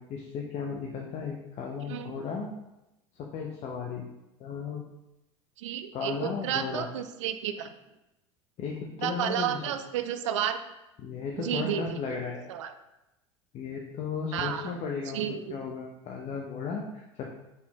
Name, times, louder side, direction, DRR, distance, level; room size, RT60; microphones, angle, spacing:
voice 1, 0.0-2.5 3.2-4.1 4.4-4.8 5.9-6.9 8.6-9.7 11.0-12.5 13.5-17.3, left 5 dB, 45° left, 0 dB, 0.7 m, -35 dB
voice 2, 5.6-7.7 9.0-10.6 11.4-12.0 12.5-12.7 14.3-14.7 15.1-15.6, right 9 dB, 75° right, 9 dB, 0.4 m, -31 dB
4.1 x 3.8 x 2.9 m, 0.93 s
hypercardioid pair, 75°, 16 cm